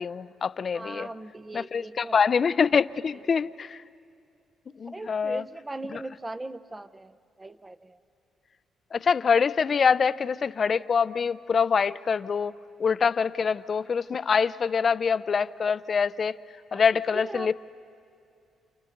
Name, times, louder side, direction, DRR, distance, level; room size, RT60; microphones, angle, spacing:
voice 1, 0.0-1.1 1.5-3.8 4.8-5.4 5.9-6.0 8.9-12.5 12.8-16.4 16.7-17.5, left 6 dB, 45° left, 16 dB, 0.4 m, -25 dB
voice 2, 0.7-2.3 3.4-3.5 4.9-8.0 16.7-16.8 17.1-17.5, right 2 dB, 20° right, 13 dB, 0.6 m, -39 dB
29.0 x 28.5 x 3.9 m, 2.5 s
cardioid pair, 90°, 0 cm